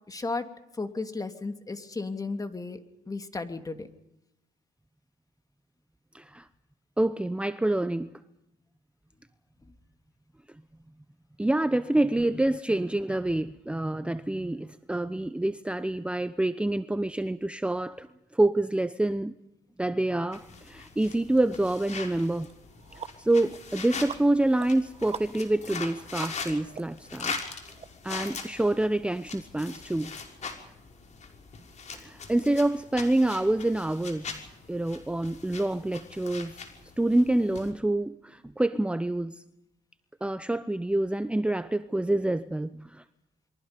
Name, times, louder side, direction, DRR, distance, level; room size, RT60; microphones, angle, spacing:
voice 1, 0.1-2.8 3.1-3.9, left 3 dB, 25° left, 2.8 m, -34 dB
voice 2, 6.1-6.5 7.0-8.1 11.4-18.1 18.3-19.3 19.8-22.5 23.2-27.4 28.0-30.1 31.9-34.4 34.7-36.6 37.0-39.4 40.2-43.0, right 1 dB, 5° right, 0.9 m, -27 dB
sound 1, 20.3-37.7, left 5 dB, 50° left, 5.8 m, -41 dB
sound 2, 22.0-22.1 22.5-27.9, right 6 dB, 45° right, 1.8 m, -44 dB
28.0 x 23.5 x 5.3 m
supercardioid pair, 70°, 15 cm